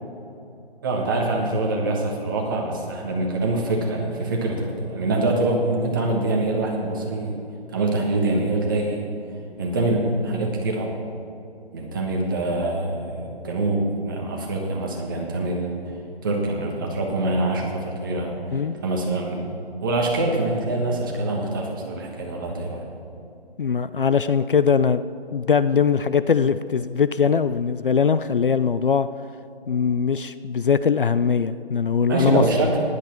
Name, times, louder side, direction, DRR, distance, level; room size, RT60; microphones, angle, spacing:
voice 1, 0.8-7.3 7.7-9.0 9.6-10.9 11.7-15.8 16.2-18.4 18.7-19.5 19.8-22.8 32.1-32.8, right 2 dB, 20° right, -1 dB, 1.4 m, -24 dB
voice 2, 23.6-25.0 25.3-29.1 29.7-32.7, left 6 dB, 55° left, 13 dB, 0.4 m, -21 dB
15.0 x 11.0 x 4.5 m, 2.7 s
hypercardioid pair, 170°, 31 cm